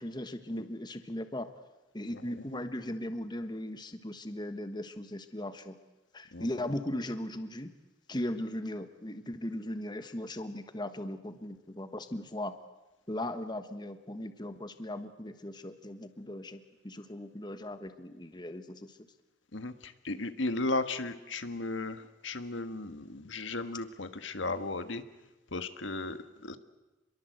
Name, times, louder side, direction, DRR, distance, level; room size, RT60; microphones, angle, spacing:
voice 1, 0.0-1.5 1.9-5.8 6.1-7.7 8.1-12.5 13.1-19.0, left 1 dB, 25° left, 9 dB, 1.4 m, -38 dB
voice 2, 2.1-2.6 6.3-6.6 19.5-25.0 25.5-26.6, left 2 dB, 85° left, 9 dB, 1.6 m, -36 dB
28.5 x 22.5 x 8.0 m, 1.0 s
head